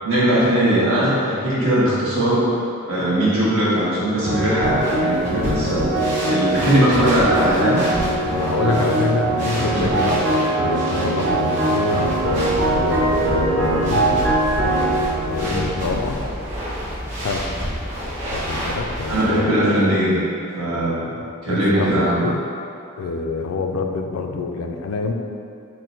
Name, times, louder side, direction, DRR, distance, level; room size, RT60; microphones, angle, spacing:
voice 1, 0.0-2.5 2.9-5.9 6.3-7.8 8.6-8.8 9.7-9.9 15.4-15.7 19.1-20.2 20.6-21.1 21.4-22.2, right 1 dB, 80° right, -9 dB, 1.2 m, -19 dB
sound 1, 4.2-16.7, right 1 dB, 60° right, 0.6 m, -22 dB
sound 2, 4.6-19.4, equal, 35° right, 1.2 m, -31 dB
voice 2, 8.3-12.1 12.7-14.3 15.3-16.2 17.2-17.5 18.3-19.5 21.2-22.4 23.0-25.1, left 3 dB, 85° left, 4 dB, 0.4 m, -26 dB
sound 3, 12.0-19.2, equal, 10° right, 0.5 m, -32 dB
4.5 x 2.1 x 3.9 m, 2.6 s
head